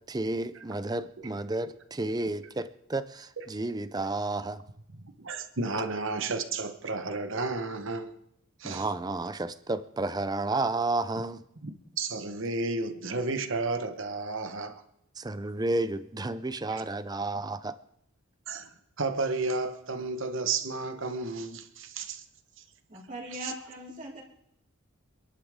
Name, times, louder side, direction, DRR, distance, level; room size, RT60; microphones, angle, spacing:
voice 1, 0.1-4.6 8.6-11.4 15.2-17.8, right 2 dB, 20° right, 0.5 m, -31 dB
voice 2, 4.9-8.1 8.6-8.9 11.6-14.8 16.7-16.8 18.5-18.7 19.0-22.2 22.6-22.7 23.3-23.5, right 3 dB, 60° right, 1.2 m, -32 dB
voice 3, 22.9-24.2, equal, 35° right, 3.3 m, -40 dB
26.0 x 11.0 x 3.7 m
head